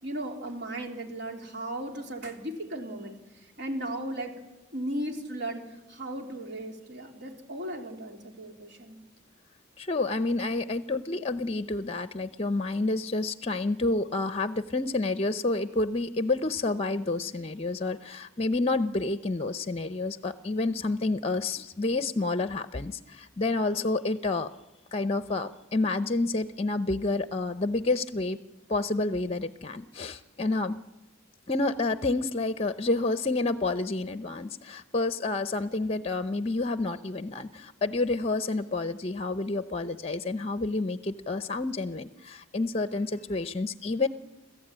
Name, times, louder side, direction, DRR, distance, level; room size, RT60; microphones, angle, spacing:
voice 1, 0.0-4.3 4.7-5.6 5.9-9.0, right 1 dB, 60° right, 2 dB, 3.6 m, -36 dB
voice 2, 9.8-24.5 24.9-28.4 28.7-30.8 31.5-44.1, left 2 dB, 30° left, 11 dB, 0.7 m, -29 dB
27.0 x 15.0 x 8.9 m, 1.1 s
head